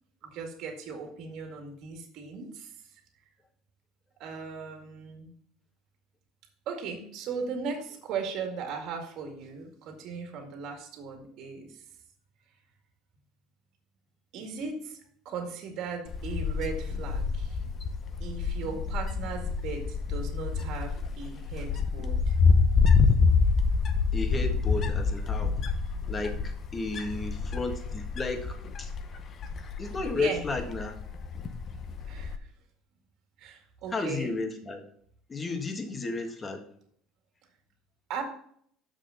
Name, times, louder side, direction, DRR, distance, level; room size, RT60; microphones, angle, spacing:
voice 1, 0.2-2.8 4.2-5.3 6.7-11.8 14.3-15.0 15.3-17.6 18.2-22.4 30.2-30.4 32.0-32.5 33.4-34.3 38.1-38.2, right 5 dB, 60° right, 3 dB, 2.0 m, -37 dB
Wind, 16.1-32.4, left 5 dB, 40° left, 0.9 m, -27 dB
voice 2, 24.1-25.6 26.1-28.9 29.8-31.0 33.9-34.8 35.3-36.7, left 3 dB, 25° left, 4 dB, 1.7 m, -33 dB
6.7 x 6.2 x 5.6 m, 0.63 s
supercardioid pair, 120°, 0 cm